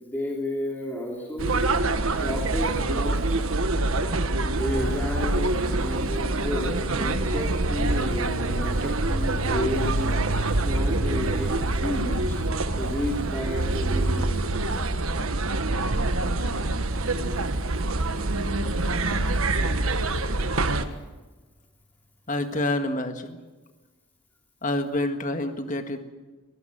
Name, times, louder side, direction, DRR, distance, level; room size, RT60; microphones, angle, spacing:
voice 1, 0.0-1.5 2.1-3.5 4.5-10.2 10.6-12.4 12.8-15.2 18.9-19.0, left 1 dB, 10° left, -1 dB, 2.7 m, -32 dB
sound 1, 1.4-20.8, right 2 dB, 75° right, 1.4 m, -25 dB
voice 2, 22.3-23.4 24.6-26.0, left 1 dB, 35° left, 7 dB, 1.7 m, -27 dB
22.5 x 16.5 x 7.8 m, 1.3 s
head